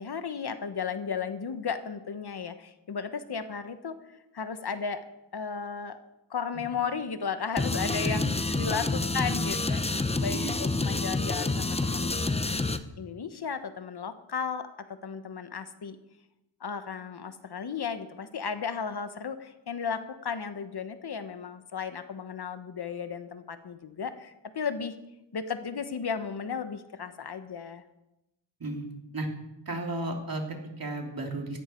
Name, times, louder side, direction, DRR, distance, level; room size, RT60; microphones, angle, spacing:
voice 1, 0.0-5.0 5.3-6.0 6.3-8.3 8.6-9.8 10.2-16.0 16.6-24.9 25.3-27.8, left 6 dB, 55° left, 10 dB, 1.2 m, -35 dB
sound 1, 7.6-12.8, left 2 dB, 15° left, 0.8 m, -28 dB
voice 2, 8.0-8.7 9.5-9.6 10.3-10.6 28.6-28.9 29.1-29.3 29.7-31.6, right 2 dB, 50° right, 1 dB, 3.1 m, -34 dB
16.0 x 13.5 x 4.5 m, 0.92 s
wide cardioid pair, 90°, 45 cm